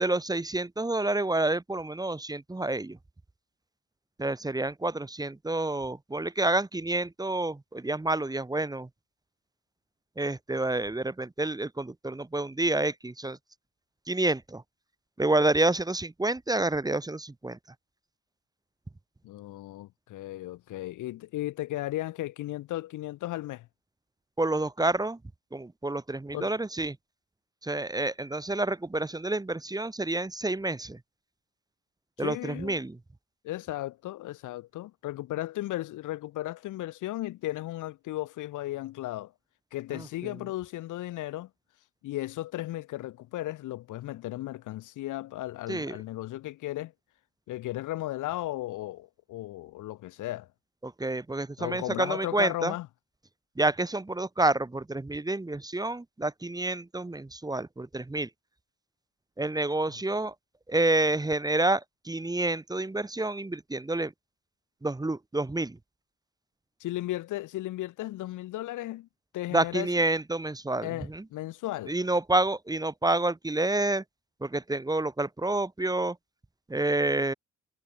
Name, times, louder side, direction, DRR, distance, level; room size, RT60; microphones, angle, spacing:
voice 1, 0.0-3.0 4.2-8.9 10.2-13.4 14.1-14.6 15.2-17.6 24.4-25.2 25.5-27.0 27.6-31.0 32.2-33.0 39.9-40.3 45.7-46.0 50.8-52.7 53.6-58.3 59.4-60.3 60.7-64.1 64.8-65.8 69.5-71.2 71.9-74.0 74.4-76.2 76.7-77.3, right 2 dB, 15° right, 1.4 m, -28 dB
voice 2, 19.2-23.7 26.3-26.5 32.2-32.8 33.4-39.3 39.7-41.5 42.0-46.9 47.5-50.5 51.6-52.9 66.8-69.1 69.3-69.9 70.8-71.9, left 16 dB, 85° left, 1.4 m, -35 dB
cardioid pair, 90°, 30 cm